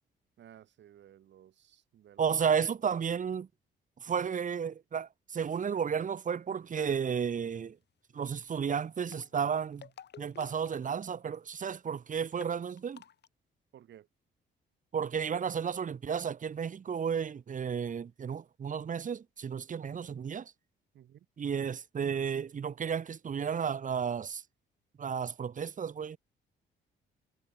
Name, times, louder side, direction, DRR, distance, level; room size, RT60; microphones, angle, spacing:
voice 1, 0.4-2.6 4.1-4.3 13.7-14.1 20.9-21.2, right 11 dB, 65° right, 1.6 m, -56 dB
voice 2, 2.2-3.5 4.0-7.8 8.1-9.9 10.2-13.0 14.9-20.5 21.4-24.4 25.0-26.2, right 7 dB, 40° right, 1.2 m, -33 dB
sound 1, 6.7-7.1 8.9-11.4 11.7-11.8 12.0-12.1 12.3-13.3, left 9 dB, 60° left, 3.9 m, -52 dB
cardioid pair, 90°, 20 cm